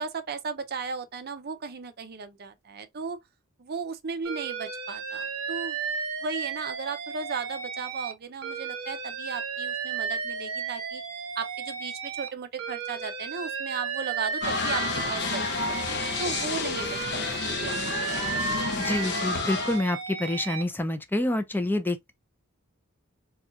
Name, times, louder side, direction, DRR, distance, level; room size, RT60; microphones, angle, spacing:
voice 1, 0.0-3.2 3.6-5.8 6.2-11.0 11.4-15.7 16.2-17.8, right 5 dB, 50° right, 0.6 m, -36 dB
Alarm, 4.3-8.1 8.4-12.3 12.6-16.5 16.8-20.6, right 6 dB, 80° right, 0.8 m, -34 dB
sound 1, 14.4-19.8, left 4 dB, 55° left, 0.7 m, -30 dB
voice 2, 18.8-22.1, left 1 dB, 10° left, 0.5 m, -27 dB
4.2 x 2.3 x 2.4 m
head